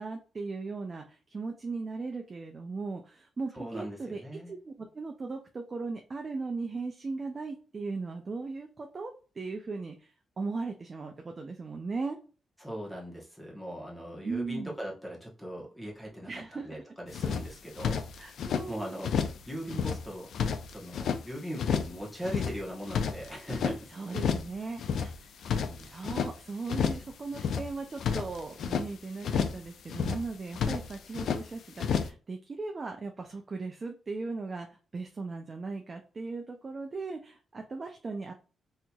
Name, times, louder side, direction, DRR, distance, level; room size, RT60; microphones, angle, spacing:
voice 1, 0.0-4.2 4.5-10.1 10.4-12.2 14.2-14.7 16.3-16.7 18.2-18.9 23.9-38.3, right 3 dB, 25° right, 3 dB, 0.4 m, -38 dB
voice 2, 3.5-4.5 12.6-18.0 18.7-20.3 20.7-23.9 25.5-25.9, equal, 5° left, -3 dB, 1.0 m, -40 dB
sound 1, 17.1-18.7 19.0-19.4 19.7-21.2 21.6-22.0 22.2-23.8 24.1-24.5 24.8-26.3 26.7-27.1 27.3-28.9 29.2-29.6 29.9-31.4 31.8-32.1, left 7 dB, 70° left, 0.4 m, -31 dB
4.2 x 2.8 x 2.3 m, 0.36 s
wide cardioid pair, 170°, 0 cm